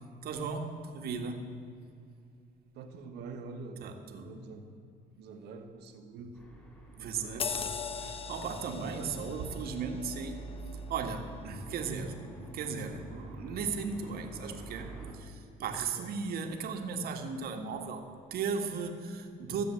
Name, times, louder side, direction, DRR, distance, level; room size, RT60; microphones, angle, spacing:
voice 1, 0.2-1.5 3.8-4.3 7.0-10.4 10.9-19.6, right 5 dB, 65° right, 5 dB, 1.6 m, -37 dB
voice 2, 2.7-4.6 5.2-6.4 7.0-7.4 8.8-9.2 15.8-16.2, right 4 dB, 80° right, 5 dB, 1.5 m, -46 dB
sound 1, 6.3-15.1, right 2 dB, 10° left, 3.9 m, -46 dB
sound 2, 7.4-12.4 12.8-13.0, left 6 dB, 35° left, 0.7 m, -41 dB
14.5 x 7.6 x 7.9 m, 2.4 s
cardioid pair, 110°, 17 cm